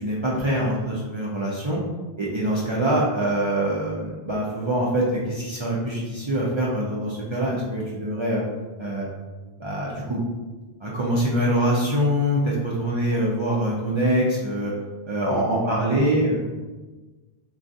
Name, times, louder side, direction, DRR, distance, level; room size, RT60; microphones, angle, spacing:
voice 1, 0.0-1.8 2.2-8.4 8.8-9.0 9.6-10.2 10.8-14.7 15.1-16.4, right 1 dB, 50° right, -5 dB, 0.3 m, -24 dB
voice 2, 15.3-16.1 16.4-16.5, right 2 dB, 70° right, 1 dB, 0.8 m, -31 dB
3.5 x 2.3 x 2.6 m, 1.2 s
omnidirectional pair, 1.1 m